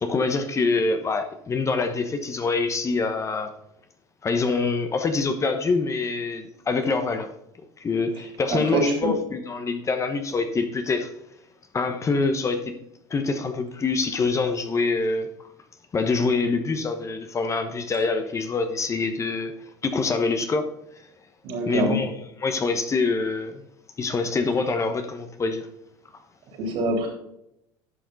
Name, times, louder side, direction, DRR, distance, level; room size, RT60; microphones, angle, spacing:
voice 1, 0.0-3.5 4.2-7.3 7.8-11.1 11.7-12.7 13.1-15.3 15.9-19.5 19.8-20.7 21.6-23.6 24.0-25.7, left 4 dB, 25° left, 7 dB, 1.1 m, -25 dB
voice 2, 8.5-9.1 21.4-22.0 26.6-27.1, right 2 dB, 55° right, 1 dB, 3.7 m, -24 dB
11.0 x 5.8 x 4.0 m, 0.79 s
hypercardioid pair, 90°, 11 cm